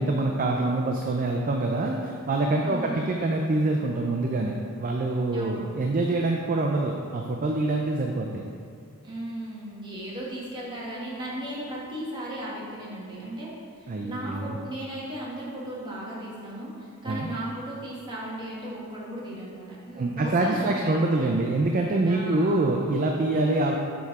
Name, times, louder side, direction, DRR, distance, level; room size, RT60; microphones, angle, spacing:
voice 1, 0.0-8.4 13.9-14.6 17.0-17.3 20.0-23.8, right 2 dB, 40° right, 1 dB, 0.4 m, -25 dB
voice 2, 2.6-3.1 5.3-5.7 9.0-13.5 13.8-21.3 22.1-22.9, right 1 dB, 20° right, -7 dB, 1.4 m, -36 dB
7.0 x 4.2 x 4.6 m, 2.3 s
head